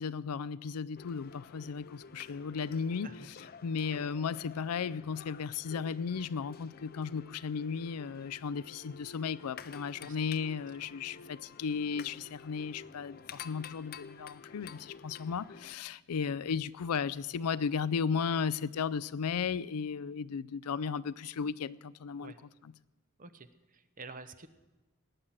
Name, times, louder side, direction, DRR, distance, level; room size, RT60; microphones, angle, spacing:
voice 1, 0.0-3.1 3.6-22.3, left 6 dB, 90° left, 0.4 m, -35 dB
sound 1, 1.0-15.8, left 6 dB, 45° left, 0.6 m, -51 dB
voice 2, 23.2-24.5, right 3 dB, 40° right, 0.8 m, -49 dB
18.5 x 10.0 x 7.4 m
head